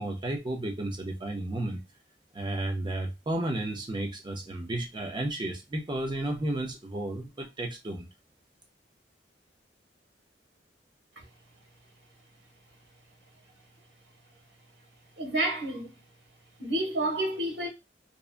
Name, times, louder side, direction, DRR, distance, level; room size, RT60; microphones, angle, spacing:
voice 1, 0.0-1.8 2.3-8.1, right 1 dB, 25° right, 0.5 m, -32 dB
voice 2, 15.2-15.9 16.6-17.7, right 1 dB, 75° right, 1.1 m, -29 dB
2.6 x 2.2 x 2.4 m
head